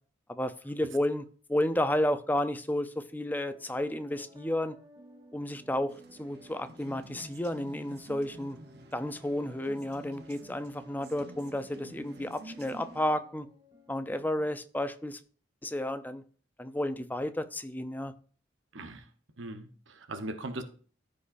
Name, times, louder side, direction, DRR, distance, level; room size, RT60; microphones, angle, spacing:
voice 1, 0.3-4.8 5.3-5.9 6.2-8.6 8.9-13.5 13.9-15.2 15.6-16.2 16.6-18.1, left 1 dB, 10° left, 0.6 m, -32 dB
sound 1, 3.5-14.5, equal, 20° right, 1.1 m, -55 dB
sound 2, 5.9-13.0, right 1 dB, 55° right, 0.9 m, -51 dB
voice 2, 18.7-19.1 19.4-20.6, right 2 dB, 80° right, 1.1 m, -39 dB
14.0 x 5.2 x 2.6 m
head